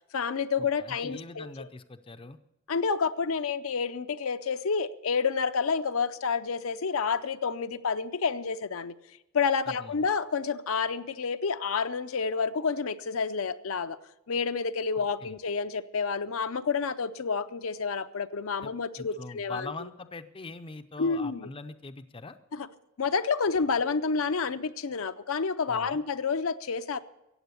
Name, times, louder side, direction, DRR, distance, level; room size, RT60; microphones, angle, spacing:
voice 1, 0.1-1.5 2.7-8.9 9.3-14.0 14.3-19.7 21.0-21.5 22.5-22.7 23.0-27.0, left 5 dB, 70° left, 10 dB, 0.6 m, -29 dB
voice 2, 0.8-2.4 9.7-10.0 14.9-15.4 18.6-22.4 25.7-26.0, left 3 dB, 25° left, 10 dB, 0.5 m, -42 dB
15.0 x 8.6 x 8.3 m, 0.93 s
head